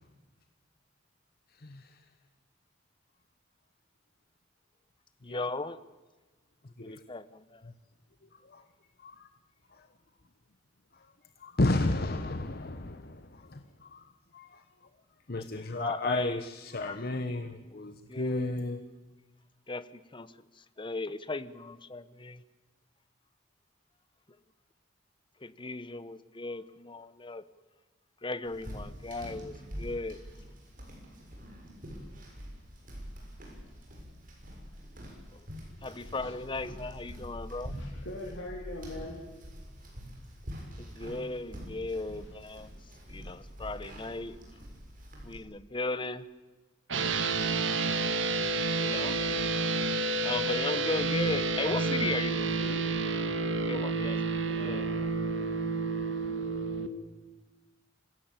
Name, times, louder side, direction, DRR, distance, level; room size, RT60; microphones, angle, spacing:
voice 1, 5.2-5.8 6.8-7.6 15.3-16.4 16.8-18.7 19.7-22.4 25.4-27.4 28.2-30.2 35.3-35.5 35.8-37.8 40.8-42.8 43.1-44.4 45.2-46.2 48.7-49.2 50.2-52.6 53.7-54.2 54.6-54.9, left 3 dB, 25° left, 0.9 m, -37 dB
voice 2, 11.4-13.6 13.9-14.0 14.3-14.5 15.3-18.8, left 2 dB, 55° left, 1.0 m, -32 dB
sound 1, 28.4-45.4, equal, 45° right, 7.0 m, -45 dB
voice 3, 37.7-39.2 42.2-42.3 49.0-49.4 52.5-52.8 54.4-55.1 56.4-56.5, left 1 dB, 80° left, 3.7 m, -43 dB
sound 2, 46.9-56.9, right 3 dB, 75° right, 1.6 m, -30 dB
26.0 x 17.0 x 9.0 m
head